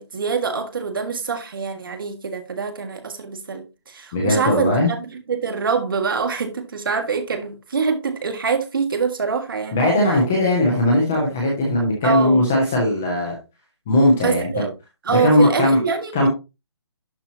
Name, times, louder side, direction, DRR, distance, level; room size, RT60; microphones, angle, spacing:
voice 1, 0.0-9.9 12.0-12.4 14.2-14.7 15.0-16.3, right 5 dB, 50° right, 1.6 m, -25 dB
voice 2, 4.1-4.9 9.7-13.4 13.9-14.7 15.1-15.8 16.1-16.3, left 1 dB, 5° left, 0.3 m, -18 dB
11.5 x 4.3 x 2.7 m
hypercardioid pair, 170°, 14 cm